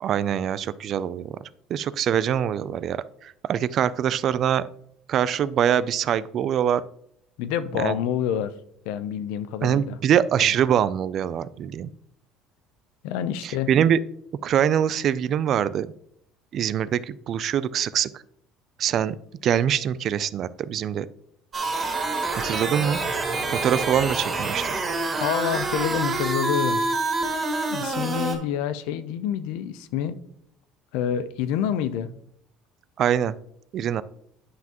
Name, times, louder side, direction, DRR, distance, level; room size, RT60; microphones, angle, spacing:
voice 1, 0.0-1.4 1.7-4.6 5.1-6.8 7.8-8.0 9.6-11.9 13.4-14.0 14.4-15.9 16.5-18.2 18.8-19.2 19.4-21.1 22.4-23.0 23.5-24.7 33.0-33.3 33.7-34.0, right 9 dB, 45° right, 17 dB, 0.4 m, -24 dB
voice 2, 7.4-8.5 8.9-10.0 10.4-10.5 13.0-13.7 25.2-26.8 27.7-30.2 30.9-32.1, left 9 dB, 80° left, 13 dB, 0.5 m, -27 dB
sound 1, 21.5-28.3, right 3 dB, 30° right, 2.3 m, -27 dB
9.5 x 5.9 x 2.9 m, 0.70 s
cardioid pair, 125°, 0 cm